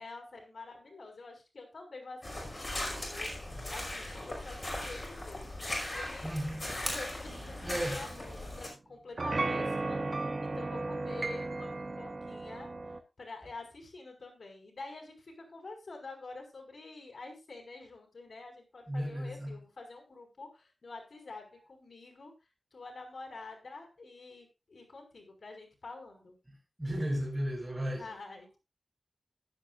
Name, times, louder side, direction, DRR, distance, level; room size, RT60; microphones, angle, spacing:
voice 1, 0.0-6.4 6.8-10.0 10.4-12.7 13.2-22.3 22.7-26.4 27.8-28.6, left 3 dB, 65° left, 5.4 m, -47 dB
sound 1, 2.2-8.7, left 1 dB, 30° left, 5.2 m, -38 dB
voice 2, 6.2-6.6 7.6-8.0 18.9-19.6 26.8-28.1, equal, 15° right, 4.9 m, -34 dB
sound 2, 7.3-8.7 9.2-13.0, right 2 dB, 50° right, 1.2 m, -36 dB
15.0 x 11.5 x 2.5 m
wide cardioid pair, 105°, 0 cm